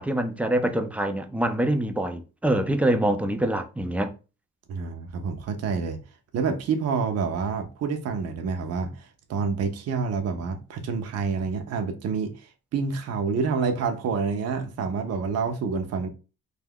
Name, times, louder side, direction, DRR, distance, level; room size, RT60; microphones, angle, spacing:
voice 1, 0.0-4.1, right 1 dB, 5° right, 0.3 m, -25 dB
voice 2, 4.7-6.0 6.3-16.1, right 5 dB, 55° right, 0.6 m, -28 dB
2.3 x 2.1 x 3.5 m
cardioid pair, 90°, 30 cm